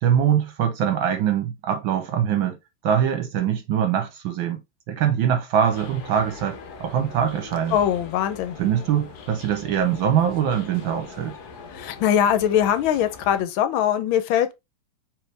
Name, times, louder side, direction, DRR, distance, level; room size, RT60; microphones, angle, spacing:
voice 1, 0.0-2.6 2.8-4.6 4.9-7.8 8.6-11.4, right 9 dB, 75° right, 1.6 m, -23 dB
sound 1, 5.6-13.4, left 5 dB, 60° left, 1.2 m, -42 dB
voice 2, 7.7-8.6 11.7-14.5, left 10 dB, 75° left, 1.5 m, -21 dB
4.7 x 3.3 x 3.3 m
omnidirectional pair, 2.2 m